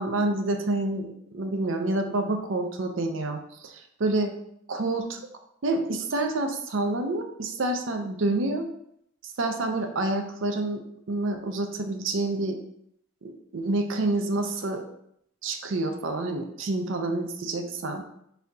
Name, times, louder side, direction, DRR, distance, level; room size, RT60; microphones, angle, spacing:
voice 1, 0.0-4.3 4.7-5.2 5.6-8.7 9.2-12.6 13.2-14.9 15.4-18.0, right 2 dB, 70° right, 6 dB, 0.6 m, -28 dB
4.1 x 2.7 x 4.8 m, 0.73 s
head